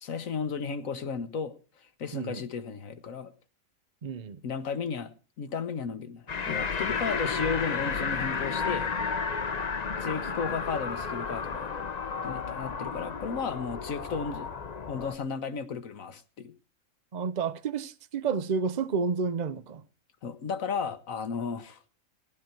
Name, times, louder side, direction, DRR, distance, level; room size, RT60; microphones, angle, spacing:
voice 1, 0.0-1.5 2.0-3.3 4.4-8.9 10.0-11.7 12.2-14.5 14.9-16.5 20.2-21.8, left 5 dB, 70° left, 1.5 m, -34 dB
voice 2, 4.0-4.4 17.1-19.8, right 5 dB, 40° right, 0.7 m, -30 dB
sound 1, 6.3-15.2, left 5 dB, 35° left, 0.8 m, -32 dB
15.5 x 12.0 x 4.5 m
omnidirectional pair, 1.5 m